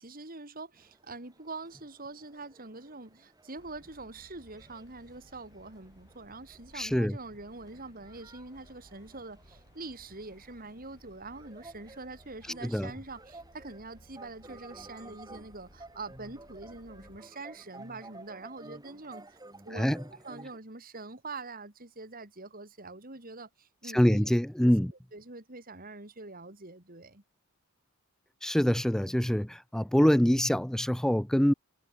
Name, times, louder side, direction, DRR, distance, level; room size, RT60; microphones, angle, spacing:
voice 1, 0.0-19.4 19.6-19.9 20.2-24.2 24.6-24.7 25.1-27.2, right 3 dB, 40° right, 3.3 m, -44 dB
sound 1, 0.8-20.6, right 2 dB, 15° right, 2.9 m, -54 dB
sound 2, 3.6-17.2, left 1 dB, 50° left, 4.8 m, -59 dB
voice 2, 6.7-7.2 12.6-12.9 19.7-20.0 23.9-24.9 28.4-31.5, equal, ahead, 0.4 m, -25 dB
head